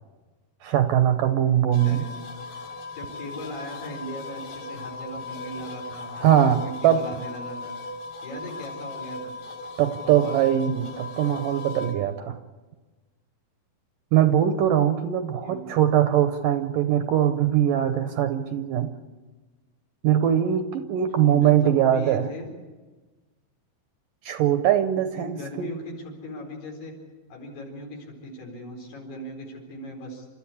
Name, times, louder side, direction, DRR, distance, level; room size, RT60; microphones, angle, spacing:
voice 1, 0.6-2.0 6.2-7.0 9.8-12.4 14.1-18.9 20.0-22.3 24.2-25.8, right 10 dB, 75° right, 8 dB, 2.1 m, -21 dB
sound 1, 1.7-11.9, left 3 dB, 65° left, 5.3 m, -38 dB
voice 2, 2.9-7.7 8.2-9.3 10.0-10.4 15.4-15.8 21.2-22.5 25.1-26.9 27.3-30.4, equal, 85° left, 0 dB, 6.4 m, -38 dB
29.5 x 13.5 x 8.5 m, 1.3 s
omnidirectional pair, 4.5 m